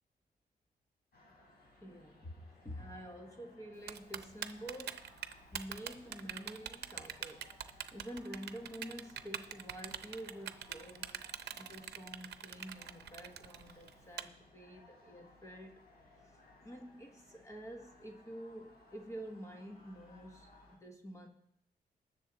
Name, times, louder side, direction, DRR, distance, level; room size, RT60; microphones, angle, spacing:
sound 1, 1.1-20.8, left 2 dB, 65° left, 3.4 m, -62 dB
voice 1, 1.7-5.1 5.5-7.5 7.9-21.3, equal, 15° left, 3 dB, 1.2 m, -48 dB
Typing, 3.9-14.2, right 10 dB, 90° right, 0.6 m, -43 dB
19.5 x 7.0 x 3.9 m, 0.77 s
wide cardioid pair, 145°, 17 cm